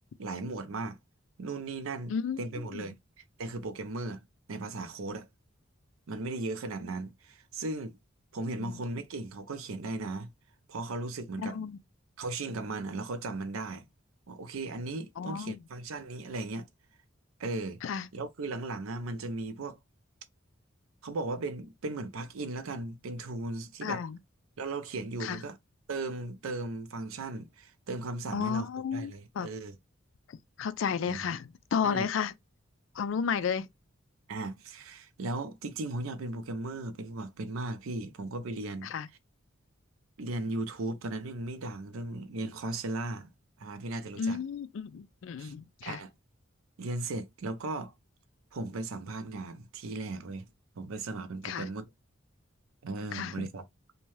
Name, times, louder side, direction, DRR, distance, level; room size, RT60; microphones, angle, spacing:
voice 1, 0.2-1.0 1.4-4.2 4.5-5.3 6.1-8.0 8.3-10.3 10.7-11.6 12.2-13.9 14.3-16.7 17.4-17.8 18.1-19.8 21.0-24.0 24.6-25.6 25.9-29.8 31.1-31.2 31.8-32.1 34.3-38.9 40.2-43.3 43.6-44.4 45.4-45.5 45.8-46.1 46.8-47.9 48.5-50.5 50.8-51.9 52.8-53.6, right 2 dB, 80° right, 0.5 m, -37 dB
voice 2, 2.1-2.4 2.7-2.9 8.6-8.8 11.4-11.8 15.2-15.6 17.8-18.1 23.8-24.2 25.2-25.4 28.3-29.5 30.3-32.3 33.0-33.7 38.8-39.1 44.2-46.0 51.4-51.7 53.1-53.5, left 6 dB, 65° left, 0.3 m, -32 dB
2.7 x 2.2 x 3.1 m
head